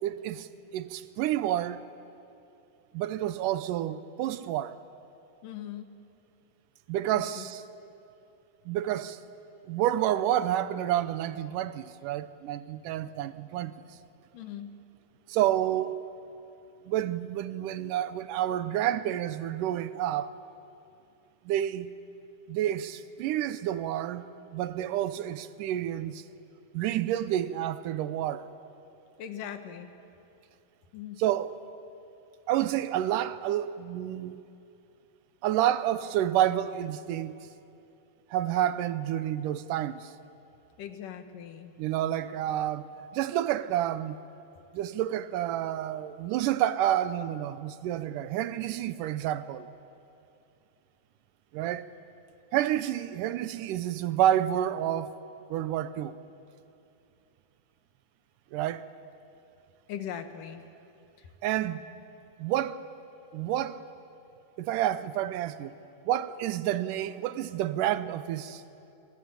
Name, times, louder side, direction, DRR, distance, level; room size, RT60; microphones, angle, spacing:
voice 1, 0.0-1.8 2.9-4.8 6.9-7.6 8.7-9.2 9.7-13.7 15.3-16.0 16.9-20.3 21.5-21.9 22.5-24.3 24.5-26.2 26.7-28.5 31.2-31.6 32.5-34.4 35.4-37.3 38.3-40.1 41.8-44.2 44.7-49.7 51.5-51.9 52.5-55.1 55.5-56.2 58.5-58.9 61.4-61.9 62.4-62.8 63.3-63.8 64.6-65.8 66.1-68.6, right 12 dB, 80° right, 2.3 m, -29 dB
voice 2, 5.4-5.9 7.1-7.5 14.3-14.7 29.2-29.9 30.9-31.2 40.8-41.7 59.9-60.6, left 9 dB, 80° left, 3.0 m, -40 dB
25.0 x 23.0 x 8.9 m
omnidirectional pair, 3.7 m